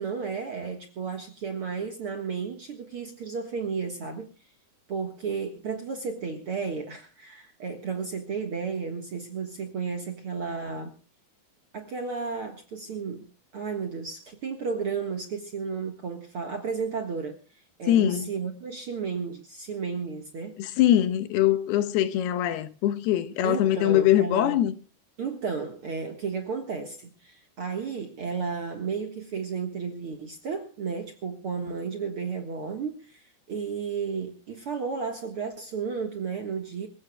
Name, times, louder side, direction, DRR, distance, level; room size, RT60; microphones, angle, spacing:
voice 1, 0.0-4.3 4.9-10.9 11.7-13.3 13.5-17.4 17.8-20.6 23.4-24.6 25.2-36.9, right 5 dB, 50° right, 1.7 m, -33 dB
voice 2, 17.9-18.3 20.6-24.7, left 12 dB, 85° left, 3.0 m, -22 dB
26.5 x 15.5 x 2.3 m
omnidirectional pair, 4.5 m